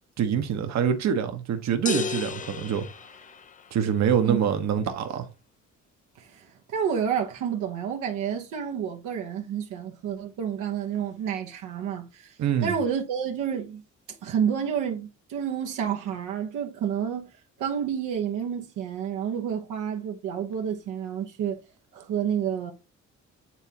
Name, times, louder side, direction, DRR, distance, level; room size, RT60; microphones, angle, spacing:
voice 1, 0.2-2.9 3.7-5.3 12.4-12.7, right 8 dB, 65° right, 1.1 m, -25 dB
sound 1, 1.9-3.9, left 6 dB, 25° left, 0.4 m, -33 dB
voice 2, 6.2-12.3 12.6-13.8 14.2-17.3 17.6-21.6 21.9-22.7, right 8 dB, 85° right, 1.1 m, -29 dB
8.9 x 3.6 x 2.9 m
cardioid pair, 90°, 30 cm